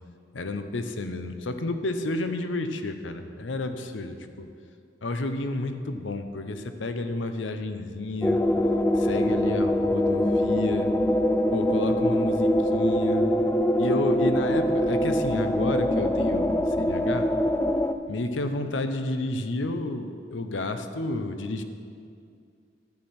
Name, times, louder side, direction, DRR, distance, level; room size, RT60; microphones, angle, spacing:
voice 1, 0.3-4.5 5.0-8.4 8.9-10.9 11.5-13.3 13.8-17.3 18.1-21.6, left 2 dB, 85° left, 8 dB, 0.7 m, -31 dB
sound 1, 8.2-17.9, left 1 dB, 10° left, 0.4 m, -23 dB
12.0 x 9.6 x 4.4 m, 2.4 s
head